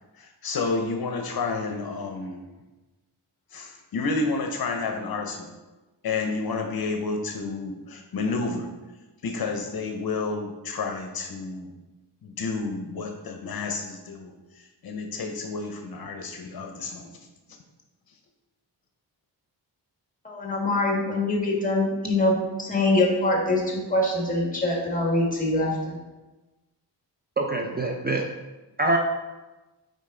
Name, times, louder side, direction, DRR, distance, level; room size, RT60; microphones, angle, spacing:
voice 1, 0.2-2.4 3.5-5.5 6.0-8.7 9.2-11.7 12.2-17.1, left 3 dB, 60° left, 4 dB, 0.7 m, -30 dB
voice 2, 20.2-26.0, left 2 dB, 20° left, -2 dB, 1.8 m, -24 dB
voice 3, 27.4-28.2 28.8-29.0, right 2 dB, 25° right, 2 dB, 0.5 m, -24 dB
5.3 x 5.0 x 3.8 m, 1.1 s
cardioid pair, 75°, 41 cm